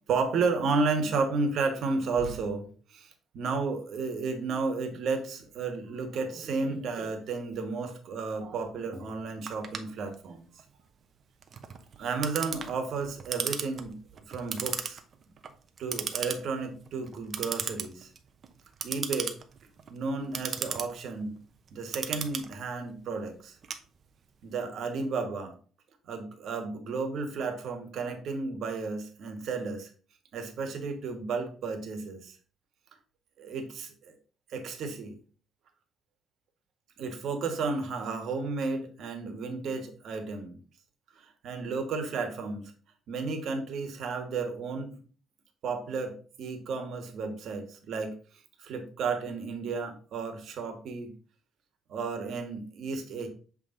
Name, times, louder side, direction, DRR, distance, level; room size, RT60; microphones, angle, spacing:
voice 1, 0.1-10.5 12.0-14.0 14.3-15.0 15.8-18.1 18.8-19.3 19.9-21.4 21.7-23.6 24.4-25.5 26.1-29.9 30.3-32.4 33.4-34.1 34.5-35.2 37.0-40.6 41.2-42.7 43.1-45.0 45.6-48.1 48.6-51.1 51.9-53.3, right 4 dB, 60° right, 5 dB, 1.4 m, -32 dB
Clock, 9.5-24.4, right 6 dB, 40° right, 0.7 m, -37 dB
7.3 x 3.4 x 3.8 m, 0.40 s
cardioid pair, 130°, 0 cm